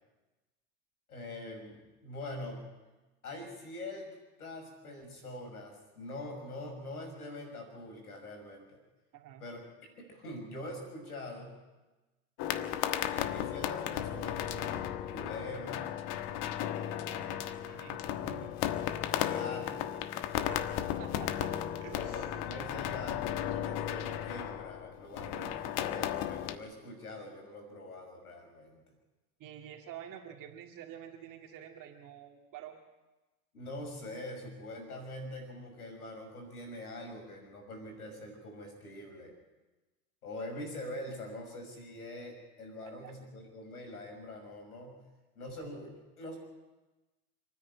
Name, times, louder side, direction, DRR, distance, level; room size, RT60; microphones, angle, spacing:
voice 1, 1.1-2.7 3.2-8.8 9.4-9.6 10.0-11.6 13.1-15.9 19.1-19.9 21.9-28.8 33.5-39.3 40.2-45.0 45.3-46.4, left 1 dB, 85° left, 4 dB, 6.3 m, -44 dB
voice 2, 9.1-9.4 17.0-18.6 20.4-20.7 21.0-21.5 21.8-22.3 29.4-32.8 42.8-43.1, right 10 dB, 45° right, 2 dB, 2.2 m, -48 dB
sound 1, 12.4-26.6, left 11 dB, 55° left, 1.4 m, -35 dB
28.0 x 10.0 x 9.7 m, 1.1 s
hypercardioid pair, 85°, 43 cm